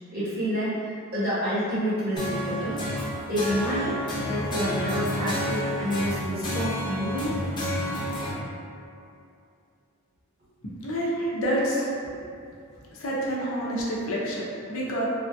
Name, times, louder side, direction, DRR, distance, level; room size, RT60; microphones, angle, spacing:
voice 1, 0.1-0.8 1.1-2.8 3.3-4.0 4.3-7.4 11.1-11.4, equal, 45° right, -11 dB, 1.0 m, -28 dB
sound 1, 2.2-8.3, left 1 dB, 20° left, 0.5 m, -30 dB
voice 2, 10.8-11.8 13.0-15.1, right 1 dB, 70° left, -5 dB, 0.6 m, -28 dB
3.4 x 2.6 x 2.3 m, 2.5 s
head